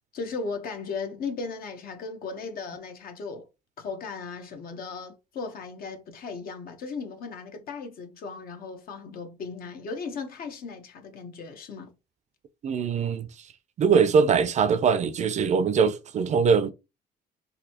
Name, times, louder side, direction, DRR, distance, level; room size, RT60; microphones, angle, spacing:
voice 1, 0.1-3.5 3.8-11.9, left 4 dB, 60° left, 1.0 m, -36 dB
voice 2, 12.6-13.3 13.8-16.7, right 6 dB, 45° right, 0.5 m, -22 dB
4.0 x 2.7 x 2.9 m
cardioid pair, 110°, 17 cm